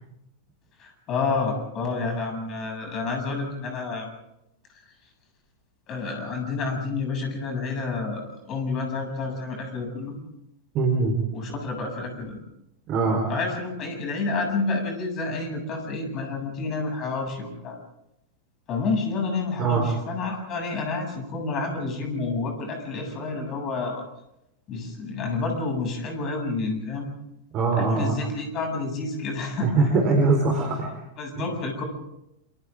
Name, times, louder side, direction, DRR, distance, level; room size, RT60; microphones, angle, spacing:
voice 1, 0.8-4.1 5.9-10.2 11.3-12.4 13.3-17.8 18.7-24.0 24.7-27.1 27.8-29.7 31.2-31.8, left 3 dB, 35° left, 3 dB, 7.9 m, -29 dB
voice 2, 10.7-11.2 12.9-13.3 19.6-19.8 27.5-28.2 29.6-30.9, right 3 dB, 35° right, 2 dB, 4.6 m, -22 dB
29.5 x 28.5 x 3.8 m, 0.85 s
figure-of-eight pair, 90°, 0 cm